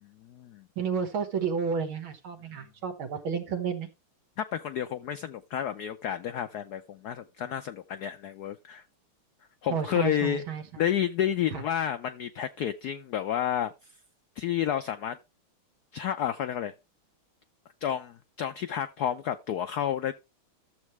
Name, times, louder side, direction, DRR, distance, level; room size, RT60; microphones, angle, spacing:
voice 1, 0.0-0.7 4.4-8.8 9.6-10.4 10.8-13.9 14.4-15.2 15.9-16.7 17.8-20.1, left 10 dB, 85° left, 0.8 m, -30 dB
voice 2, 0.8-3.9 9.7-10.6, right 6 dB, 70° right, 2.2 m, -31 dB
13.0 x 7.3 x 3.1 m
omnidirectional pair, 2.4 m